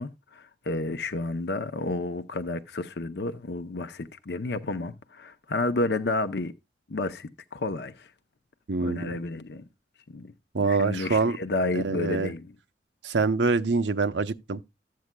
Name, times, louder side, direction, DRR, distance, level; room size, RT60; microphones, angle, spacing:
voice 1, 0.0-6.5 6.9-8.1 8.8-9.6 10.1-10.3 10.6-12.5, left 2 dB, 65° left, 0.7 m, -31 dB
voice 2, 8.7-9.1 10.5-11.4 11.7-12.3 13.0-14.7, right 4 dB, 85° right, 0.8 m, -25 dB
13.5 x 8.4 x 2.2 m
head